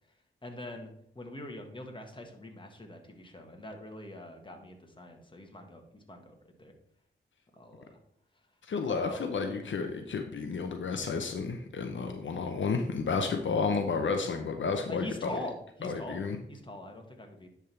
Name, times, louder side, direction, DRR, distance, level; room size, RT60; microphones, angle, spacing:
voice 1, 0.4-6.7 7.5-8.0 8.8-9.7 14.9-16.2 16.5-17.5, left 1 dB, 25° left, 3 dB, 1.6 m, -44 dB
voice 2, 8.7-15.4 15.8-16.4, left 4 dB, 70° left, 6 dB, 0.7 m, -31 dB
10.5 x 3.6 x 4.4 m, 0.71 s
cardioid pair, 55°, 20 cm